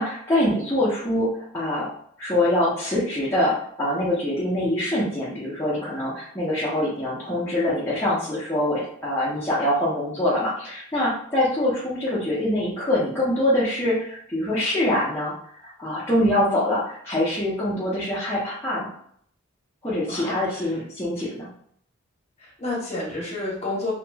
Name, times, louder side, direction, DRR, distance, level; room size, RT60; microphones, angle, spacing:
voice 1, 0.0-1.9 2.2-15.3 15.6-18.9 19.8-21.5, left 1 dB, 10° left, -10 dB, 0.6 m, -24 dB
voice 2, 20.1-20.6 22.4-23.9, left 2 dB, 30° left, -4 dB, 0.9 m, -30 dB
2.9 x 2.8 x 2.2 m, 0.64 s
head